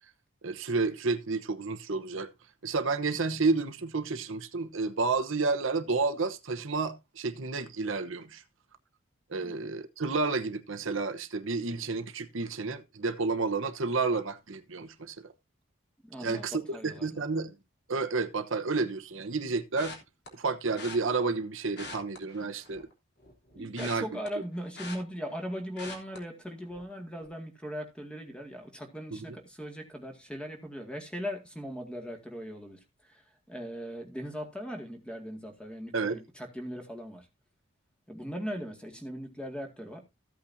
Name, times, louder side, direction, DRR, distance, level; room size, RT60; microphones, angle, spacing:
voice 1, 0.4-2.3 2.6-8.4 9.3-15.2 16.2-17.6 17.9-20.0 20.3-22.8 23.6-24.0 35.9-36.2, right 3 dB, 70° right, 1.0 m, -30 dB
voice 2, 9.4-9.7 16.0-16.5 16.7-17.2 23.6-37.3 38.1-40.0, equal, 5° left, 2.0 m, -39 dB
sound 1, 19.8-20.3 20.8-21.0 21.7-22.9 23.2-25.4 25.8-26.2 26.7-26.9 27.2-27.3, left 3 dB, 50° left, 3.3 m, -43 dB
15.0 x 8.5 x 2.7 m
head